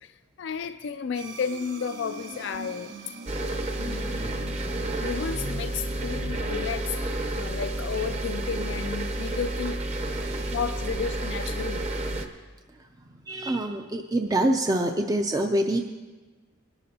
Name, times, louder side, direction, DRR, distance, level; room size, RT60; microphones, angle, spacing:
voice 1, 0.0-3.0 3.3-4.3 5.0-9.8 10.5-11.8, left 6 dB, 60° left, 9 dB, 0.3 m, -33 dB
sound 1, 1.1-6.4, right 1 dB, 60° right, 2.5 m, -41 dB
sound 2, 3.3-12.3, right 1 dB, 35° right, 0.8 m, -30 dB
voice 2, 10.2-10.5 13.3-15.8, right 1 dB, 20° right, 5 dB, 0.4 m, -25 dB
20.5 x 11.5 x 2.8 m, 1.3 s
head